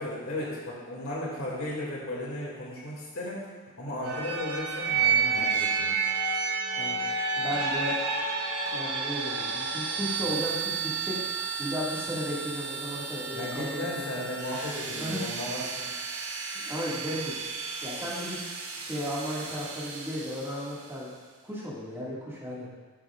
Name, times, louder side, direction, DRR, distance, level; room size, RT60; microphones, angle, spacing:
voice 1, 0.0-3.5 3.8-6.0 13.3-15.9, left 1 dB, 70° left, -4 dB, 2.4 m, -35 dB
sound 1, 4.0-20.8, right 5 dB, 90° right, 1.4 m, -31 dB
voice 2, 7.4-8.0 8.7-11.2 11.6-14.1 14.9-15.2 16.6-17.3 17.8-18.4 18.8-21.1 21.4-22.7, equal, 10° right, -7 dB, 2.0 m, -34 dB
11.0 x 7.6 x 2.5 m, 1.4 s
head